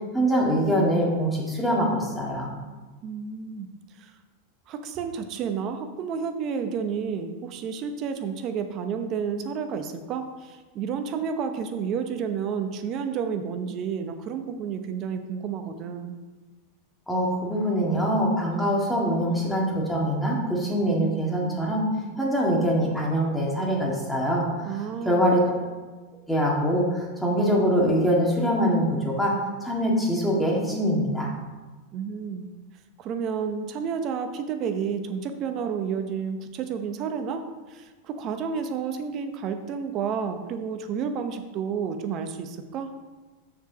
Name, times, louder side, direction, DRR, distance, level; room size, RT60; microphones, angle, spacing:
voice 1, 0.1-2.5 17.1-21.9 22.2-25.6 26.3-29.3 29.6-31.3, equal, 5° left, -3 dB, 2.0 m, -24 dB
voice 2, 3.0-3.7 4.0-4.1 4.7-16.2 24.6-25.5 31.9-32.5 33.0-37.4 37.7-42.9, right 6 dB, 40° right, 7 dB, 0.9 m, -31 dB
6.6 x 4.9 x 6.1 m, 1.3 s
hypercardioid pair, 120°, 0 cm